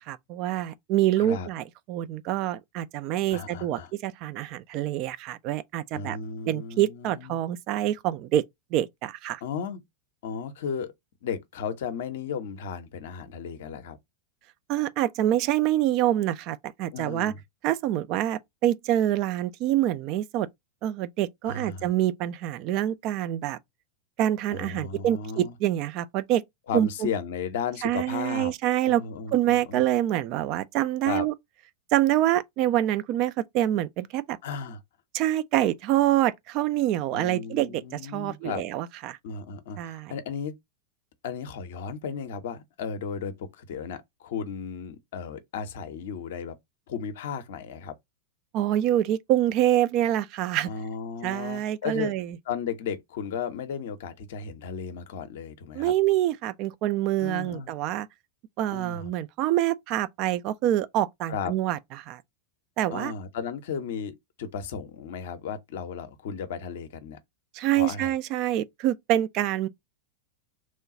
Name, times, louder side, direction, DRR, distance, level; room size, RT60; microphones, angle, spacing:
voice 1, 0.1-6.2 6.5-8.4 8.7-9.4 14.7-17.3 17.6-20.5 20.8-23.6 24.2-26.4 26.7-27.1 27.8-29.0 29.3-31.3 31.9-34.4 35.1-39.2 39.8-40.1 48.5-50.7 51.2-52.4 55.7-58.1 58.6-62.2 62.8-63.1 67.5-69.7, right 13 dB, 40° right, 0.3 m, -26 dB
voice 2, 1.2-1.5 3.3-3.9 5.9-7.4 9.4-9.8 10.2-10.9 11.2-14.0 16.9-17.4 21.5-21.9 24.5-25.6 26.7-28.5 28.8-29.8 31.0-31.3 34.4-34.8 37.1-38.6 39.2-40.5 41.2-46.5 46.9-47.9 50.6-52.1 52.5-55.9 57.2-57.7 58.7-59.1 61.3-61.5 62.9-67.2 67.7-68.1, left 6 dB, 55° left, 0.6 m, -34 dB
3.1 x 2.3 x 3.8 m
figure-of-eight pair, 90°, 0 cm